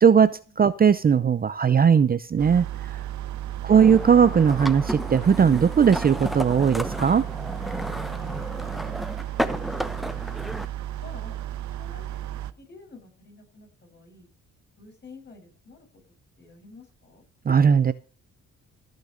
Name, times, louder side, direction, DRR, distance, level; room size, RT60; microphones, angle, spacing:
voice 1, 0.0-2.7 3.6-7.2 17.5-17.9, right 7 dB, 30° right, 15 dB, 0.6 m, -18 dB
sound 1, 2.4-12.5, right 13 dB, 70° right, 1.0 m, -34 dB
sound 2, 3.7-10.7, equal, ahead, 0.9 m, -33 dB
voice 2, 11.0-11.4 11.8-14.3 14.8-15.9 16.4-17.2, left 3 dB, 35° left, 4 dB, 6.6 m, -50 dB
15.0 x 6.6 x 6.4 m, 0.36 s
cardioid pair, 90°, 30 cm